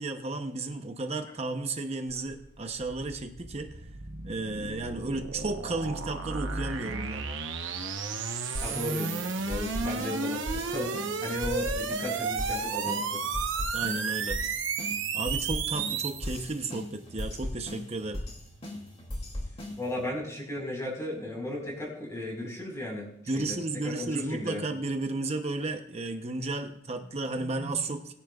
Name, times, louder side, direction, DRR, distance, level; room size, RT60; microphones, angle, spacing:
voice 1, 0.0-3.8 4.2-7.3 13.7-14.4 15.1-18.2 23.3-28.1, right 2 dB, 30° right, 6 dB, 0.8 m, -33 dB
sound 1, 2.1-16.2, right 5 dB, 65° right, 1.0 m, -33 dB
sound 2, 8.5-20.1, left 1 dB, 30° left, 2.7 m, -38 dB
voice 2, 8.6-13.2 19.8-23.1 23.3-23.6 23.8-24.6, left 1 dB, 15° left, -1 dB, 4.6 m, -35 dB
20.5 x 10.0 x 2.4 m, 0.74 s
head